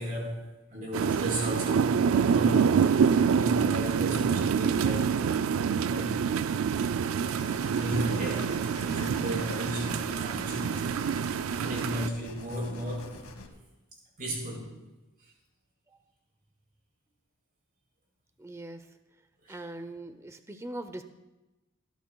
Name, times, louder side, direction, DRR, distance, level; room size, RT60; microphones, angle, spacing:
voice 1, 0.0-5.2 5.8-6.2 7.7-11.2 11.6-13.3 14.2-14.8 19.4-19.6, equal, 40° right, -2 dB, 4.6 m, -35 dB
sound 1, 0.9-12.1, right 6 dB, 65° right, 0.4 m, -26 dB
sound 2, 7.2-13.5, left 3 dB, 80° left, 2.0 m, -47 dB
voice 2, 7.8-8.1 18.4-18.9 19.5-21.0, right 1 dB, 15° right, 9 dB, 0.6 m, -41 dB
27.0 x 11.5 x 2.3 m, 1.0 s
head